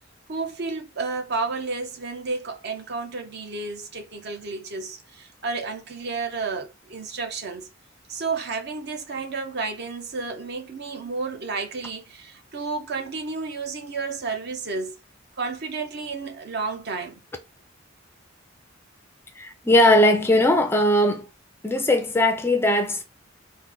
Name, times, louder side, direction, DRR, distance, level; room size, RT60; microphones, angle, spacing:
voice 1, 0.3-7.7 8.1-14.9 15.4-17.2, right 4 dB, 55° right, 0.7 m, -31 dB
voice 2, 19.4-21.3 21.6-23.0, left 1 dB, 10° left, 0.4 m, -19 dB
3.1 x 2.1 x 3.6 m
head